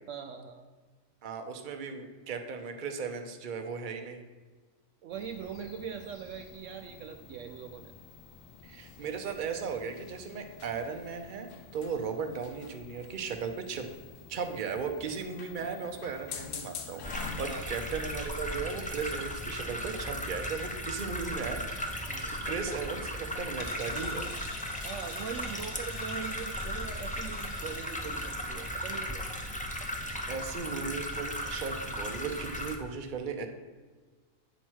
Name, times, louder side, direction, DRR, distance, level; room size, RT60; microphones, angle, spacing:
voice 1, 0.1-0.6 5.0-7.9 17.4-17.6 22.1-22.3 24.8-29.2, right 7 dB, 70° right, 6 dB, 0.9 m, -41 dB
voice 2, 1.2-4.2 8.6-11.5 11.7-13.9 14.3-22.1 22.4-24.3 30.3-33.5, right 5 dB, 40° right, 5 dB, 0.8 m, -36 dB
sound 1, 5.1-18.2, left 6 dB, 65° left, 1.1 m, -47 dB
sound 2, 17.0-32.8, equal, 10° left, 0.6 m, -36 dB
sound 3, 21.4-28.9, left 3 dB, 45° left, 1.0 m, -50 dB
9.0 x 4.4 x 6.3 m, 1.4 s
omnidirectional pair, 1.4 m